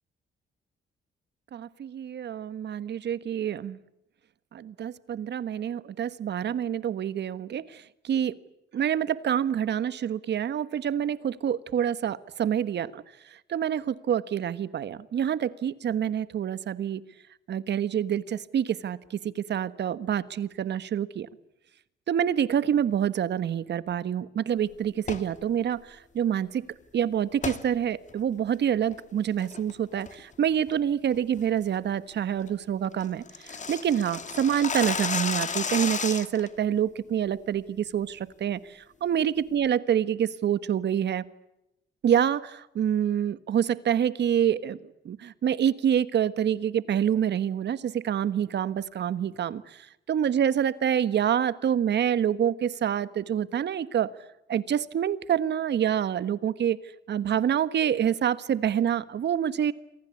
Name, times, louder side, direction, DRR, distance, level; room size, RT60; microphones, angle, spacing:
voice 1, 1.5-3.8 4.5-8.3 8.7-13.0 13.3-17.0 17.5-21.3 22.1-26.6 26.9-41.2 42.0-54.1 54.5-56.8 57.1-59.7, right 9 dB, 60° right, 15 dB, 1.4 m, -27 dB
sound 1, 25.0-25.3 27.4-27.6 28.1-28.2 28.7-29.0 29.4-29.7 30.1-30.3 30.7-30.8 31.2-31.4 31.8-31.9 32.2-32.3 32.5-32.6 32.8-36.5, left 5 dB, 40° left, 2.3 m, -32 dB
28.5 x 24.0 x 8.4 m, 0.87 s
cardioid pair, 90°, 20 cm